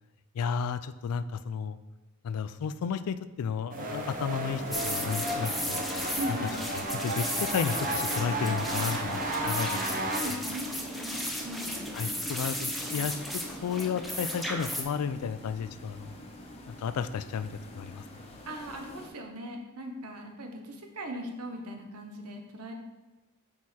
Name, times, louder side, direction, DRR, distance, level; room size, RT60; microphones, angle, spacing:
voice 1, 0.3-1.8 2.2-5.9 6.3-9.7 10.2-10.4 11.9-16.1 16.7-18.0, left 6 dB, 75° left, 13 dB, 0.3 m, -33 dB
sound 1, 3.7-10.2, right 1 dB, 40° right, 0.8 m, -33 dB
sound 2, 4.5-19.1, equal, 30° left, 0.9 m, -44 dB
sound 3, 4.7-14.8, left 1 dB, ahead, 0.8 m, -35 dB
voice 2, 6.2-6.6 9.4-12.0 18.5-22.7, right 1 dB, 90° right, 3 dB, 0.9 m, -39 dB
6.2 x 4.8 x 4.2 m, 1.1 s
head